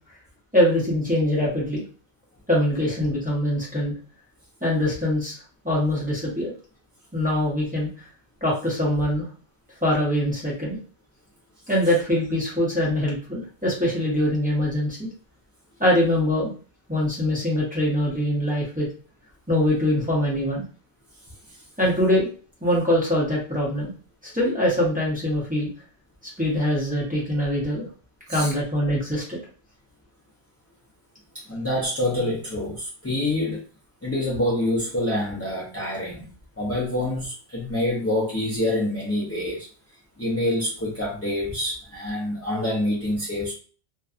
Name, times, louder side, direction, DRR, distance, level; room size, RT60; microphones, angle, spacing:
voice 1, 0.5-1.8 2.5-3.9 4.6-5.4 5.6-6.5 7.1-7.9 8.4-9.3 9.8-10.8 11.7-15.1 15.8-16.5 16.9-18.9 19.5-20.6 21.8-22.3 22.6-23.9 24.3-25.7 26.4-27.9 28.3-29.4, left 1 dB, 10° right, -6 dB, 0.8 m, -23 dB
voice 2, 31.5-33.6 34.0-36.2 36.6-39.7 40.2-43.5, left 1 dB, 20° left, -7 dB, 0.5 m, -26 dB
2.6 x 2.2 x 2.4 m, 0.39 s
omnidirectional pair, 1.2 m